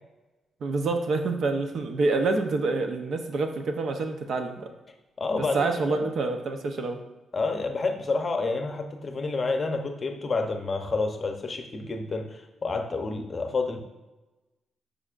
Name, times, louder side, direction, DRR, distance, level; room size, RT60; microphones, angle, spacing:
voice 1, 0.6-4.7 5.3-7.0, right 3 dB, 55° right, 6 dB, 0.7 m, -27 dB
voice 2, 5.2-6.0 7.3-13.8, left 3 dB, 30° left, 5 dB, 0.7 m, -29 dB
9.6 x 5.1 x 2.5 m, 1.1 s
cardioid pair, 140°, 0 cm